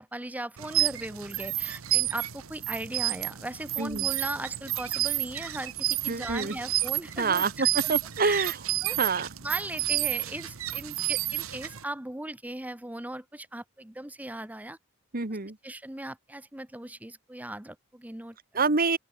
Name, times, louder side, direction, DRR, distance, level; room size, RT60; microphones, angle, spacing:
voice 1, 0.0-7.9 8.2-8.5 8.8-9.0 9.4-14.8 15.6-18.6, right 1 dB, 5° right, 0.9 m, -38 dB
sound 1, 0.6-11.8, right 15 dB, 75° right, 1.1 m, -30 dB
voice 2, 3.8-4.1 6.1-6.6 7.2-8.6 8.9-9.3 15.1-15.6 18.5-19.0, right 4 dB, 45° right, 1.5 m, -27 dB
open air
head